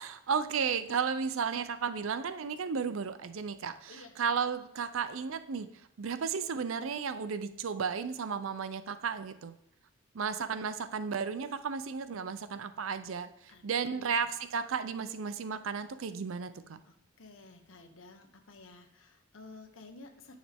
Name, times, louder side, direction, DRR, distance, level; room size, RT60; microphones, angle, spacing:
voice 1, 0.0-5.7 6.0-9.5 10.1-16.8, right 6 dB, 90° right, 12 dB, 0.5 m, -34 dB
voice 2, 13.5-14.1 16.8-20.4, left 3 dB, 85° left, 5 dB, 1.1 m, -53 dB
10.0 x 6.3 x 3.5 m, 0.77 s
head